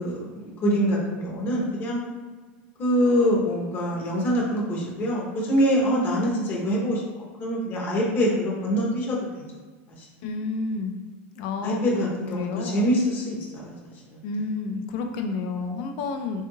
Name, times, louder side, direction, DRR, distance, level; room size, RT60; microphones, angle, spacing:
voice 1, 0.0-2.0 2.8-9.2 11.6-13.4 13.6-13.8, equal, 35° left, -3 dB, 0.8 m, -24 dB
voice 2, 10.2-10.9 11.4-12.9 14.2-16.5, left 4 dB, 65° left, 5 dB, 0.5 m, -30 dB
3.4 x 2.3 x 3.1 m, 1.4 s
supercardioid pair, 115°, 6 cm